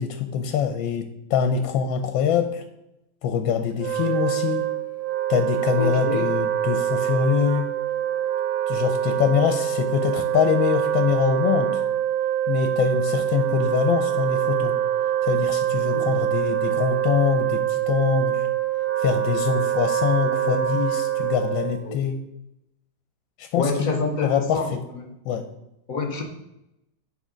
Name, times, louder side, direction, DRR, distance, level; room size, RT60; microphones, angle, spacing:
voice 1, 0.0-2.6 3.2-4.7 5.3-7.7 8.7-11.7 12.5-14.8 15.2-18.5 19.0-22.2 23.4-23.9 24.2-24.8 25.2-25.5, left 7 dB, 80° left, 7 dB, 1.3 m, -24 dB
Wind instrument woodwind instrument, 3.7-21.9, right 11 dB, 75° right, 1.5 m, -25 dB
voice 2, 5.8-6.3 15.9-16.0 20.2-20.6 21.8-22.0 23.6-25.0 25.9-26.2, left 4 dB, 55° left, 3 dB, 1.2 m, -27 dB
8.4 x 3.8 x 5.1 m, 0.86 s
omnidirectional pair, 2.1 m